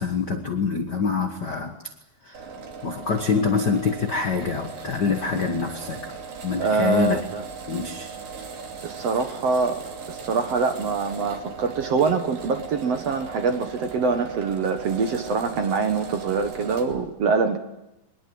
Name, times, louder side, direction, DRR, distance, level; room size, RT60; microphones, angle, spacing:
voice 1, 0.0-1.8 2.2-2.4 2.8-6.1 6.4-7.2 7.7-8.2, left 5 dB, 55° left, 5 dB, 1.1 m, -25 dB
sound 1, 2.3-17.0, right 5 dB, 70° right, 4.6 m, -38 dB
voice 2, 6.6-7.4 8.8-9.8 10.1-17.6, right 4 dB, 55° right, 6 dB, 2.0 m, -24 dB
22.5 x 21.0 x 7.8 m, 0.89 s
omnidirectional pair, 4.1 m